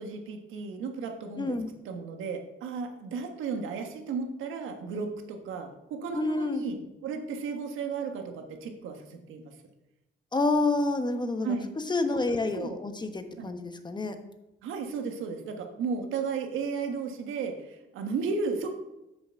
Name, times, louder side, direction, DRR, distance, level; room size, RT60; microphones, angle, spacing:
voice 1, 0.0-1.6 1.8-9.5 11.4-11.7 12.3-12.8 13.4-13.5 14.6-18.7, right 5 dB, 90° right, 5 dB, 1.5 m, -34 dB
voice 2, 1.4-1.7 6.1-6.6 10.3-11.6 11.9-14.1, left 3 dB, 20° left, 7 dB, 1.2 m, -28 dB
7.6 x 7.0 x 5.8 m, 0.93 s
cardioid pair, 90°, 20 cm